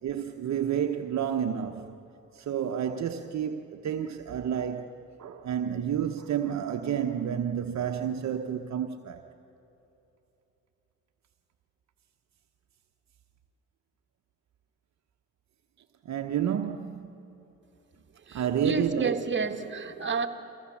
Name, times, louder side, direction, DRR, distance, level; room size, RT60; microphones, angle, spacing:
voice 1, 0.0-2.0 2.3-4.9 5.2-9.3 16.0-17.3 18.3-19.2, right 9 dB, 60° right, 0.9 m, -30 dB
voice 2, 18.1-20.3, right 4 dB, 35° right, 1.6 m, -30 dB
24.0 x 16.0 x 7.2 m
supercardioid pair, 60°, 31 cm